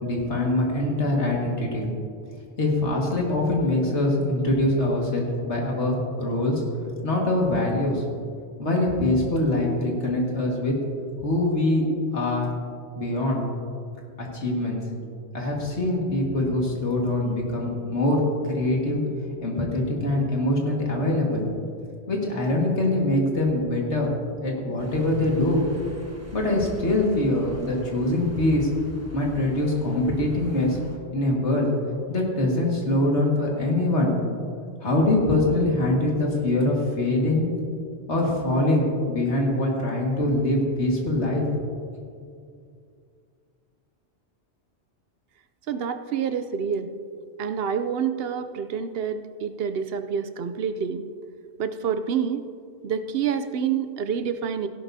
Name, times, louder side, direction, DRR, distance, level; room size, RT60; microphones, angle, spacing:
voice 1, 0.0-1.9 2.6-6.6 7.0-8.0 8.6-10.7 11.2-11.9 12.1-12.5 13.0-13.5 14.2-14.8 15.3-19.0 19.4-21.5 22.1-24.1 24.4-25.6 26.3-28.7 29.1-30.8 31.1-31.7 32.1-34.1 34.8-37.5 38.1-41.4, left 1 dB, 90° left, -1 dB, 2.2 m, -23 dB
sound 1, 24.8-31.0, right 1 dB, 15° right, 1.1 m, -44 dB
voice 2, 45.7-46.9 47.4-51.0 51.6-52.5 52.8-54.7, right 7 dB, 65° right, 9 dB, 0.8 m, -27 dB
16.5 x 11.0 x 2.7 m, 2.3 s
omnidirectional pair, 1.1 m